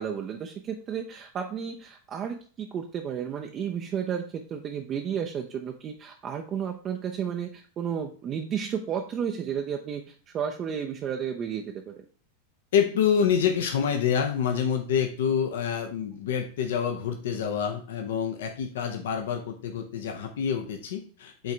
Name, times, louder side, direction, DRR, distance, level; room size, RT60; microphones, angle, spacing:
voice 1, 0.0-12.1, right 8 dB, 30° right, 3 dB, 0.5 m, -32 dB
voice 2, 12.7-21.5, left 7 dB, 60° left, 5 dB, 0.8 m, -27 dB
7.8 x 3.7 x 3.3 m, 0.40 s
figure-of-eight pair, 90°, 0 cm